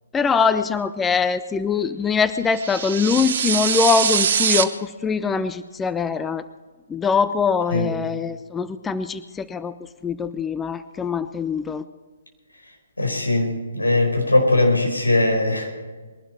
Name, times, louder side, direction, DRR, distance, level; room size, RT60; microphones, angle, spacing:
voice 1, 0.1-6.5 6.9-9.8 10.0-11.8, left 5 dB, 10° left, 12 dB, 0.4 m, -23 dB
sound 1, 2.5-4.6, right 7 dB, 45° right, 0.9 m, -22 dB
voice 2, 13.0-15.7, left 2 dB, 80° left, 1 dB, 4.7 m, -20 dB
21.5 x 12.0 x 4.6 m, 1.3 s
figure-of-eight pair, 135°, 0 cm